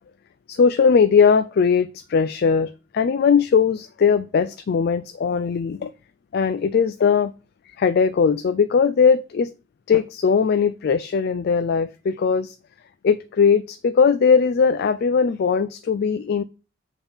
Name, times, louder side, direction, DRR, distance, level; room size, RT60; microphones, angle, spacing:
voice 1, 0.5-5.9 6.3-7.3 7.8-9.5 9.9-12.5 13.0-16.4, left 6 dB, 55° left, 0.4 m, -19 dB
7.0 x 3.6 x 5.5 m
head